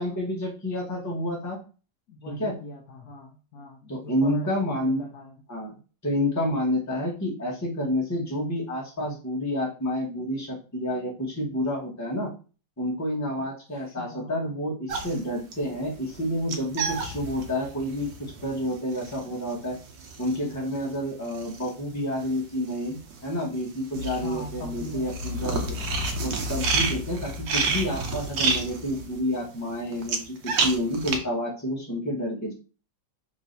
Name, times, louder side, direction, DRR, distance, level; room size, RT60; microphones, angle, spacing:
voice 1, 0.0-1.6 2.3-2.5 3.9-5.0 5.5-5.7 6.0-12.3 12.8-19.8 20.2-25.6 26.2-32.5, equal, 10° left, -2 dB, 1.0 m, -29 dB
voice 2, 2.1-5.4 13.4-13.5 13.8-14.6 24.2-25.8, left 2 dB, 70° left, 3 dB, 1.0 m, -42 dB
sound 1, 14.9-22.4 22.7-31.2, right 3 dB, 80° right, 1.4 m, -30 dB
3.6 x 3.1 x 3.9 m, 0.36 s
omnidirectional pair, 1.9 m